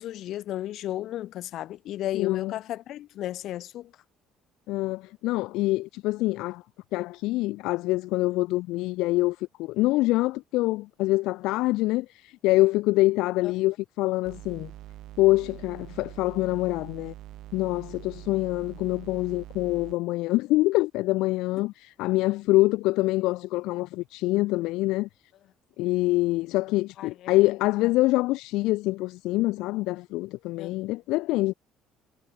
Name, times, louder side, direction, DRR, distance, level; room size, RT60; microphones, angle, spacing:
voice 1, 0.0-3.9 13.4-13.5 27.0-27.3 30.6-30.9, left 13 dB, 55° left, 5.9 m, -34 dB
voice 2, 2.1-2.5 4.7-6.6 6.9-14.7 15.2-17.1 17.5-25.1 25.8-31.5, left 19 dB, 80° left, 1.2 m, -25 dB
sound 1, 14.2-20.0, right 14 dB, 60° right, 5.6 m, -44 dB
cardioid pair, 145°, 0 cm